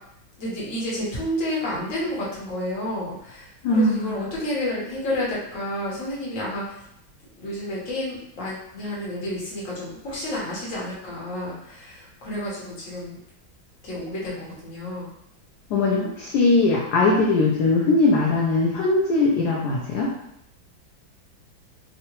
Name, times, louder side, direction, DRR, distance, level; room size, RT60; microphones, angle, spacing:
voice 1, 0.4-6.8 7.4-13.2 13.8-15.1, left 1 dB, 50° left, -6 dB, 1.1 m, -30 dB
voice 2, 3.6-4.3 15.7-20.1, left 3 dB, 70° left, -3 dB, 1.0 m, -20 dB
3.7 x 2.1 x 2.9 m, 0.76 s
omnidirectional pair, 2.2 m